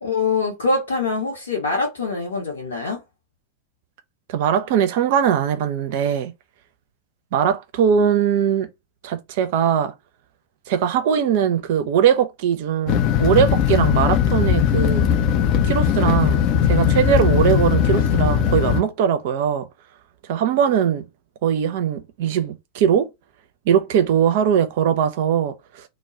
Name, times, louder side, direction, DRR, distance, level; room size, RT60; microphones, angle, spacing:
voice 1, 0.0-3.0, left 3 dB, 70° left, 0.8 m, -24 dB
voice 2, 4.3-6.3 7.3-8.7 9.0-9.9 10.7-15.1 15.6-19.7 20.3-21.1 21.4-23.1 23.7-25.8, right 8 dB, 50° right, 0.4 m, -20 dB
sound 1, 12.9-18.8, left 8 dB, 40° left, 0.4 m, -19 dB
2.2 x 2.0 x 3.6 m
figure-of-eight pair, 90°, 0 cm